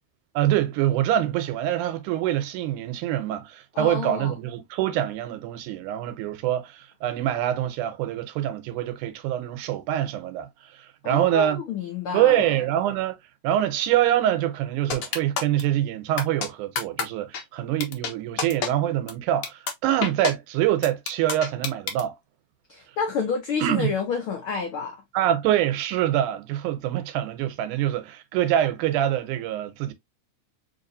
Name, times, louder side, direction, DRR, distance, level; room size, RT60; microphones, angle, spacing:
voice 1, 0.4-11.6 12.1-13.2 13.4-22.1 23.6-23.9 25.1-29.9, right 12 dB, 90° right, 2.2 m, -25 dB
voice 2, 3.7-4.3 11.0-12.6 22.7-25.0, left 6 dB, 90° left, 1.1 m, -29 dB
sound 1, 14.9-15.6 16.2-16.5 16.8-17.0 17.3-17.4 17.8-18.1 18.4-18.7 19.1-19.2 19.4-19.7 20.0-20.3 20.8-22.0, left 6 dB, 70° left, 1.4 m, -27 dB
4.6 x 2.9 x 2.6 m
omnidirectional pair, 3.5 m